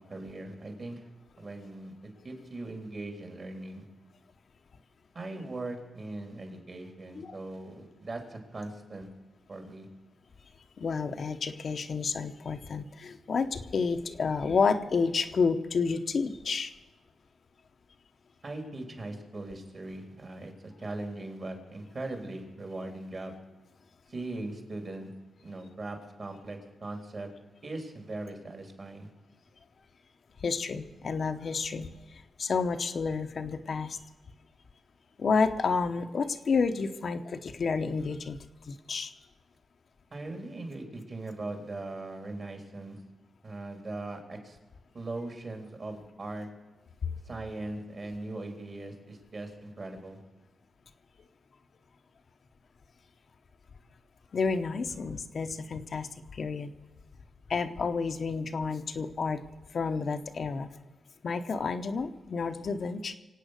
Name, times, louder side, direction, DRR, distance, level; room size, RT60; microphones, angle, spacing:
voice 1, 0.1-1.0 1.4-3.8 5.1-9.1 9.5-9.9 18.4-23.4 24.1-25.1 25.4-27.3 27.6-29.1 40.1-43.0 43.4-44.6 44.9-46.5 47.3-50.2, right 2 dB, 45° right, 4 dB, 3.5 m, -40 dB
voice 2, 10.8-16.7 30.4-34.0 35.2-38.4 38.7-39.1 47.0-47.1 54.3-56.7 57.5-59.4 59.7-60.7 61.2-63.2, left 5 dB, 60° left, 6 dB, 0.9 m, -30 dB
24.5 x 8.6 x 6.6 m, 1.2 s
cardioid pair, 85°, 0 cm